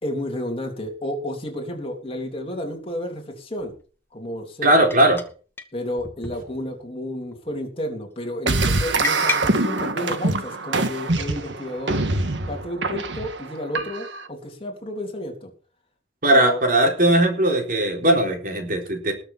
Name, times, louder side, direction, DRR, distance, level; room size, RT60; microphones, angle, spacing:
voice 1, 0.0-3.7 4.1-4.9 5.7-12.0 12.5-15.5 16.3-16.6, left 1 dB, 30° left, 2 dB, 3.4 m, -31 dB
sound 1, 1.9-2.0 3.6-3.8 4.9-5.3 5.6-5.7 6.0-6.9 7.2-7.6 9.0-9.4, left 3 dB, 10° left, 1.5 m, -31 dB
voice 2, 4.6-5.2 16.2-19.1, right 1 dB, 50° right, 2 dB, 4.0 m, -18 dB
sound 2, 8.5-14.3, right 2 dB, 80° right, 1.6 m, -24 dB
20.0 x 6.9 x 5.6 m, 0.40 s
head